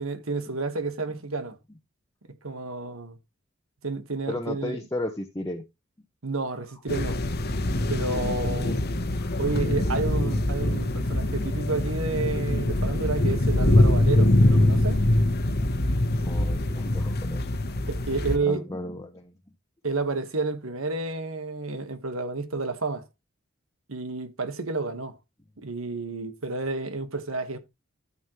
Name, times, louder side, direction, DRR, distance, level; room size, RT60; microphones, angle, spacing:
voice 1, 0.0-1.6 2.4-3.2 3.8-4.8 6.2-7.2 7.9-8.8 9.4-15.0 17.9-18.7 19.8-23.1 23.9-25.2 25.6-27.6, right 3 dB, 85° right, 1.5 m, -30 dB
voice 2, 4.3-5.6 8.1-8.7 9.2-9.8 16.2-17.5 18.5-19.3, left 1 dB, 15° left, 1.1 m, -35 dB
sound 1, 6.9-18.4, left 1 dB, 50° left, 1.2 m, -23 dB
13.0 x 7.4 x 3.1 m
head